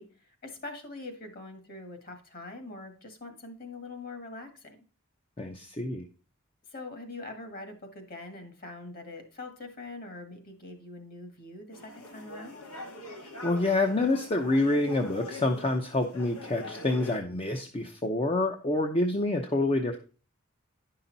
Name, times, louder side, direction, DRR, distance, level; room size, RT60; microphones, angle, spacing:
voice 1, 0.0-4.8 6.7-12.6, left 2 dB, 45° left, 6 dB, 1.8 m, -43 dB
voice 2, 5.4-6.0 13.4-20.0, left 2 dB, 25° left, 4 dB, 0.7 m, -27 dB
sound 1, 11.7-17.2, left 1 dB, 90° left, 1.7 m, -43 dB
10.5 x 5.8 x 4.0 m, 0.36 s
head